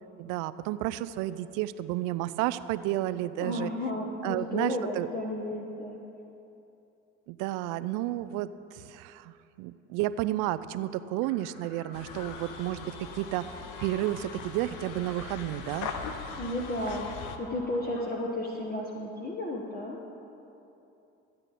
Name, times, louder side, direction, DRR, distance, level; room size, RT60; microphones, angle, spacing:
voice 1, 0.2-3.7 4.2-5.1 7.3-13.5 13.8-15.9, right 14 dB, 75° right, 15 dB, 0.5 m, -31 dB
voice 2, 3.4-6.0 16.4-17.1 17.4-20.0, left 1 dB, 30° left, -2 dB, 1.3 m, -33 dB
sound 1, 11.2-19.2, left 2 dB, 85° left, 1.6 m, -50 dB
sound 2, 11.9-17.4, left 6 dB, 70° left, 0.9 m, -41 dB
13.5 x 8.7 x 4.2 m, 2.8 s
hypercardioid pair, 60°, 32 cm